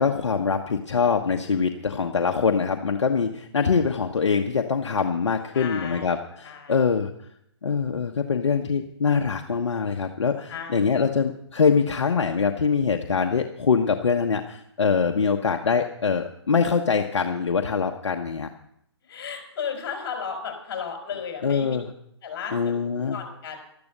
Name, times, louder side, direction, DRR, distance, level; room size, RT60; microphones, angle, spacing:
voice 1, 0.0-7.1 7.6-18.5 21.4-21.9 22.5-23.2, left 5 dB, 75° left, 4 dB, 1.2 m, -23 dB
voice 2, 5.5-6.2 6.4-6.8 10.5-11.1 19.1-21.8 22.2-22.7 23.0-23.6, left 6 dB, 45° left, 4 dB, 4.7 m, -34 dB
12.5 x 12.0 x 6.6 m, 0.74 s
hypercardioid pair, 145°, 15 cm